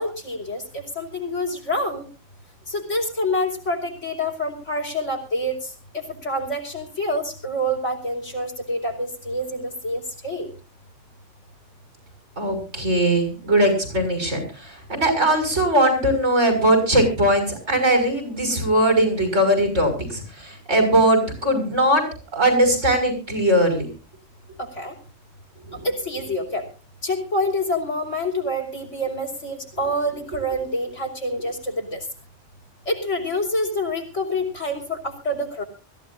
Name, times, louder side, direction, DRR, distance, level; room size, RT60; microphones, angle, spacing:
voice 1, 0.0-2.0 2.7-5.7 6.2-10.5 24.6-24.9 25.8-26.6 27.0-32.0 32.9-35.6, left 1 dB, 85° left, 1 dB, 5.3 m, -27 dB
voice 2, 12.4-14.4 14.9-22.0 22.3-23.9, right 1 dB, 85° right, 6 dB, 6.8 m, -20 dB
24.0 x 15.5 x 2.6 m, 0.34 s
omnidirectional pair, 1.2 m